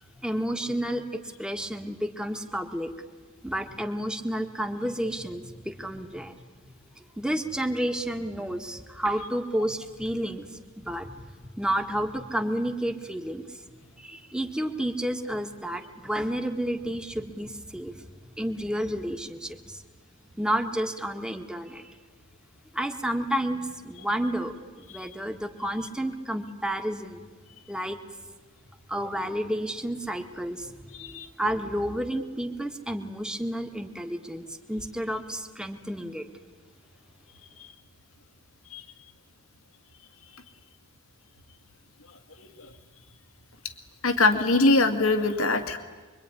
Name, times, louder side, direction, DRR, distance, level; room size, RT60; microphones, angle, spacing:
voice 1, 0.2-2.9 3.4-6.3 7.2-10.5 10.8-13.4 14.0-18.0 18.4-19.8 20.4-21.9 22.7-27.3 27.7-28.0 28.9-36.2, right 1 dB, 5° right, 5 dB, 1.8 m, -31 dB
voice 2, 44.0-45.8, left 2 dB, 80° left, 7 dB, 2.3 m, -22 dB
25.5 x 23.5 x 9.9 m, 1.4 s
head